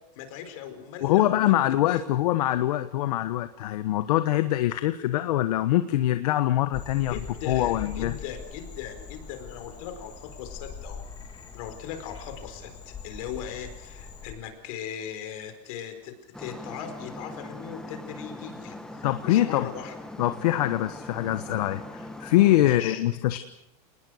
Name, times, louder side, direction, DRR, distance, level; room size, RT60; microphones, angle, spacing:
voice 1, 0.1-1.6 1.9-2.1 7.1-11.0 11.5-19.9 22.5-23.0, left 9 dB, 60° left, 8 dB, 4.8 m, -39 dB
voice 2, 1.0-7.1 7.5-8.2 19.0-19.7 20.2-23.4, left 14 dB, 75° left, 10 dB, 1.3 m, -24 dB
Frog, 6.7-14.3, left 6 dB, 20° left, 4.0 m, -42 dB
sound 1, 16.3-22.6, left 1 dB, 5° left, 1.5 m, -41 dB
28.0 x 20.0 x 6.5 m, 0.84 s
supercardioid pair, 160°, 20 cm